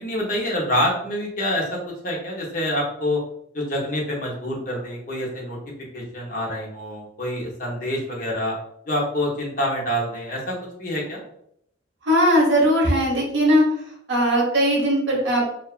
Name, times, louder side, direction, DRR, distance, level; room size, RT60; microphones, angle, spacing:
voice 1, 0.0-3.2 3.5-5.6 5.9-8.6 8.9-11.2, left 1 dB, 45° left, -2 dB, 0.7 m, -26 dB
voice 2, 12.1-13.6 14.1-15.5, equal, 75° right, -2 dB, 1.0 m, -19 dB
2.8 x 2.3 x 2.3 m, 0.73 s
head